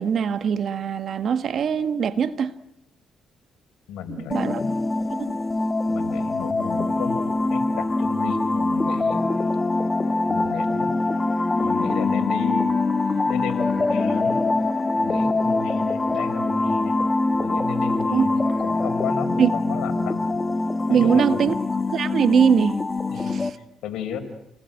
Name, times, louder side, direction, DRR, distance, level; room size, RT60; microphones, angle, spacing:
voice 1, 0.0-2.6 4.1-4.6 5.1-5.4 13.2-13.3 18.1-18.3 19.4-19.5 20.9-21.5 21.9-22.8 23.2-23.5, right 7 dB, 60° right, 1.8 m, -22 dB
voice 2, 3.9-4.7 5.9-9.2 10.3-10.9 11.6-12.8 13.3-14.4 15.0-17.0 17.4-20.2 20.9-21.5 23.1-23.4 23.8-24.2, left 8 dB, 85° left, 4.6 m, -33 dB
sound 1, 4.3-23.5, left 2 dB, 25° left, 1.8 m, -24 dB
29.5 x 20.0 x 9.1 m
cardioid pair, 90°, 0 cm